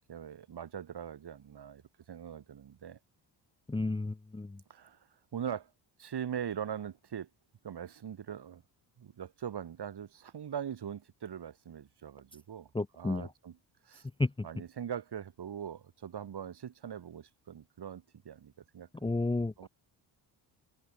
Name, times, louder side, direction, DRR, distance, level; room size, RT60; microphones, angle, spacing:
voice 1, 0.1-1.8 2.1-3.0 4.7-5.0 5.3-5.7 6.0-7.3 7.6-8.6 9.0-12.7 13.0-13.6 13.8-14.1 14.4-18.9 19.6-19.7, right 8 dB, 50° right, 2.9 m, -41 dB
voice 2, 3.7-4.6 12.7-13.3 14.2-14.5 19.0-19.7, left 2 dB, 10° left, 0.9 m, -32 dB
supercardioid pair, 60°, 50 cm